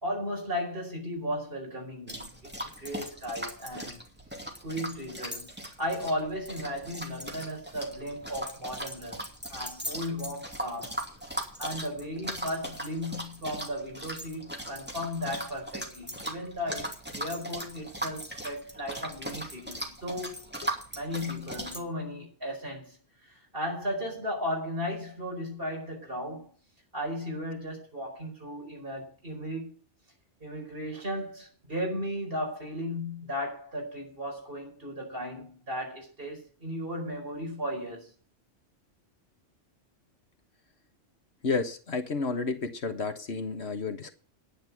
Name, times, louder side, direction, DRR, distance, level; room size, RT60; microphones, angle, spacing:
voice 1, 0.0-4.0 4.6-5.5 5.8-9.2 9.5-11.0 11.6-20.5 20.9-23.0 23.2-26.5 26.9-29.8 30.4-38.1, equal, 50° right, 5.2 m, -35 dB
sound 1, 2.1-21.8, right 1 dB, 10° right, 2.5 m, -39 dB
voice 2, 41.4-44.1, left 4 dB, 60° left, 1.6 m, -31 dB
10.5 x 10.5 x 6.1 m
omnidirectional pair, 1.2 m